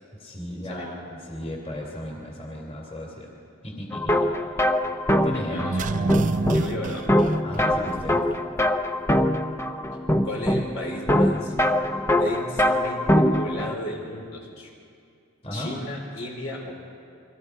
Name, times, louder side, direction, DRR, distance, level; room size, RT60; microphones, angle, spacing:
voice 1, 0.2-3.3 3.6-4.3 5.1-5.6 7.4-8.2 15.4-15.7, equal, 30° left, -1 dB, 2.9 m, -35 dB
sound 1, 3.9-13.8, left 1 dB, 10° left, 0.7 m, -23 dB
voice 2, 5.5-5.9 6.5-7.0 8.9-9.0 10.2-11.5 11.9-14.7 15.5-16.7, left 1 dB, 75° left, 0 dB, 4.3 m, -35 dB
sound 2, 5.5-8.3 8.6-8.7, right 3 dB, 35° right, 0.5 m, -29 dB
29.5 x 23.0 x 4.8 m, 2.4 s
head